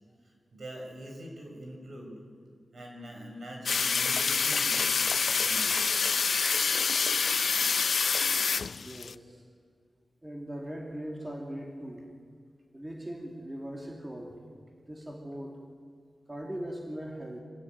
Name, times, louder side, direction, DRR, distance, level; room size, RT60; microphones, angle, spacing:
voice 1, 0.5-2.2 2.7-4.9 5.3-5.9, equal, 60° right, 1 dB, 5.8 m, -43 dB
sound 1, 3.7-9.1, left 5 dB, 70° left, 0.5 m, -27 dB
voice 2, 8.7-9.4 10.2-12.0 12.7-14.4 14.7-15.5 16.3-17.4, right 1 dB, 15° right, 0 dB, 2.6 m, -40 dB
25.5 x 17.5 x 9.3 m, 2.1 s
wide cardioid pair, 135°, 0 cm